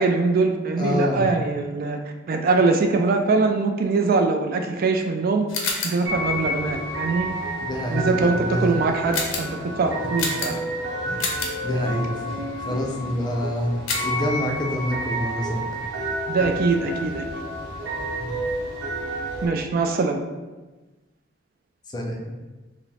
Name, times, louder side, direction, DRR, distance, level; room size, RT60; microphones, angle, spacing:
voice 1, 0.0-2.0 2.3-5.5 5.8-7.3 7.9-10.5 16.3-17.4 19.4-20.2, right 3 dB, 45° right, 5 dB, 0.3 m, -22 dB
voice 2, 0.8-1.3 7.6-8.8 10.4-10.5 11.0-11.2 11.6-13.7 14.0-15.6 18.2-18.3 21.9-22.2, left 1 dB, 20° left, 0 dB, 0.4 m, -27 dB
sound 1, 5.5-6.1 9.1-9.6 10.2-10.8 11.2-11.6 13.9-14.2, left 4 dB, 90° left, 0.7 m, -28 dB
sound 2, 6.0-19.5, right 1 dB, 70° right, 1.1 m, -30 dB
4.8 x 2.0 x 3.3 m, 1.2 s
head